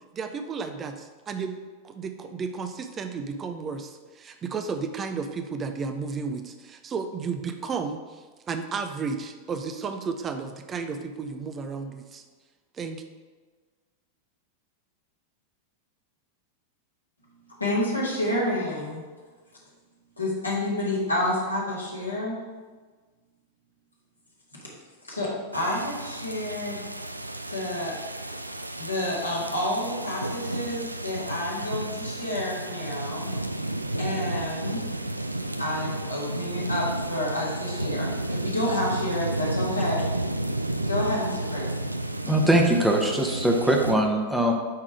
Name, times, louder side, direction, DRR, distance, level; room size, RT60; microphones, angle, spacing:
voice 1, 0.1-1.6 1.8-12.2 12.7-13.0, right 5 dB, 25° right, 7 dB, 0.5 m, -33 dB
voice 2, 17.6-19.0 20.2-22.4 25.1-26.8 27.5-28.0 28.8-33.3 34.0-34.8 35.6-40.1 40.9-41.7, left 1 dB, 85° left, -5 dB, 2.0 m, -29 dB
sound 1, 25.5-43.9, right 1 dB, 85° right, 0.3 m, -32 dB
voice 3, 42.2-44.5, right 1 dB, 5° right, 1 dB, 1.0 m, -21 dB
8.7 x 3.6 x 4.9 m, 1.4 s
figure-of-eight pair, 90°, 0 cm